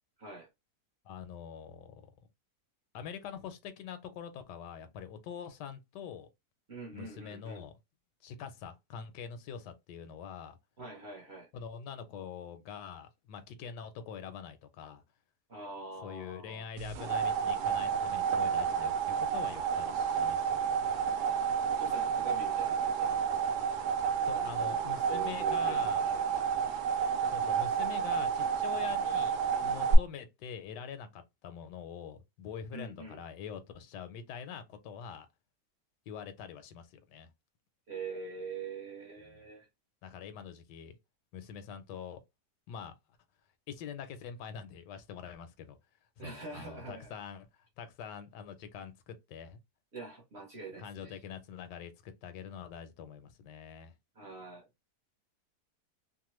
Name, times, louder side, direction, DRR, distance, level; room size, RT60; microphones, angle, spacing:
voice 1, 0.2-0.5 6.7-7.6 10.8-11.5 15.5-16.7 21.7-23.6 24.3-26.5 32.7-33.2 37.9-39.7 46.2-47.1 49.9-51.2 54.1-54.7, right 4 dB, 45° right, 1.0 m, -44 dB
voice 2, 1.0-2.1 2.9-6.3 6.9-7.8 8.2-10.6 11.5-15.0 16.0-21.1 24.2-26.0 27.3-29.4 29.6-35.3 36.1-37.3 39.2-39.4 40.0-41.0 41.3-42.2 42.7-43.0 43.7-45.8 46.2-47.5 47.8-49.6 50.8-53.9, left 7 dB, 80° left, 1.2 m, -44 dB
sound 1, 16.8-29.9, right 7 dB, 80° right, 1.1 m, -30 dB
3.0 x 2.1 x 3.0 m
omnidirectional pair, 1.8 m